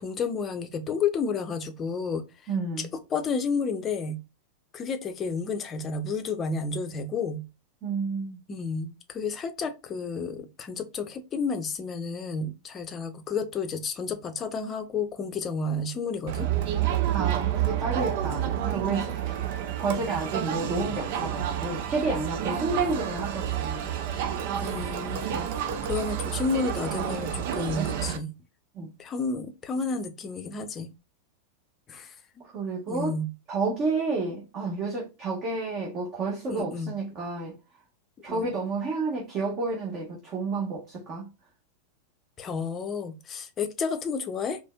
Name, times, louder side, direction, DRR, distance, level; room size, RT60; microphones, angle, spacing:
voice 1, 0.0-2.2 3.1-4.2 4.7-7.4 8.5-16.5 24.6-25.5 25.8-28.3 29.0-30.9 31.9-32.5 32.9-33.3 36.5-36.9 38.3-38.5 42.4-44.6, left 4 dB, 25° left, 0.7 m, -31 dB
voice 2, 2.5-2.9 7.8-8.4 17.1-23.9 28.7-28.9 32.4-33.2 33.5-37.6 38.2-41.3, right 3 dB, 35° right, 1.2 m, -30 dB
Crowd, 16.3-28.2, right 10 dB, 50° right, 0.6 m, -29 dB
4.3 x 3.0 x 2.2 m
figure-of-eight pair, 90°, 0 cm